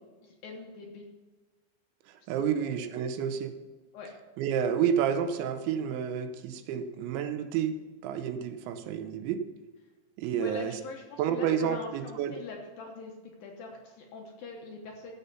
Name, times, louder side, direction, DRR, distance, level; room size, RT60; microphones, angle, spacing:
voice 1, 0.2-1.0 2.4-2.9 3.9-4.1 10.4-15.1, left 3 dB, 70° left, 0 dB, 2.3 m, -43 dB
voice 2, 2.1-3.5 4.4-9.4 10.2-10.7 11.2-12.3, right 8 dB, 85° right, 9 dB, 3.0 m, -30 dB
15.5 x 5.6 x 5.5 m, 1.3 s
omnidirectional pair, 5.3 m